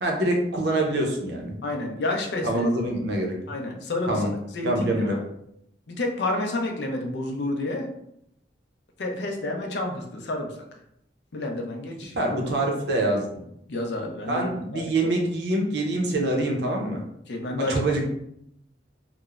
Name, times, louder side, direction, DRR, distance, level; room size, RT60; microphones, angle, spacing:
voice 1, 0.0-1.5 2.4-3.4 4.1-4.3 4.6-5.2 12.1-13.3 14.3-17.0 17.6-18.0, right 1 dB, 70° right, 1 dB, 0.6 m, -25 dB
voice 2, 1.6-2.6 3.5-5.2 5.9-7.9 9.0-10.5 11.3-12.4 13.7-15.1 17.3-17.8, left 2 dB, 70° left, 3 dB, 0.5 m, -30 dB
3.0 x 2.0 x 2.3 m, 0.75 s
head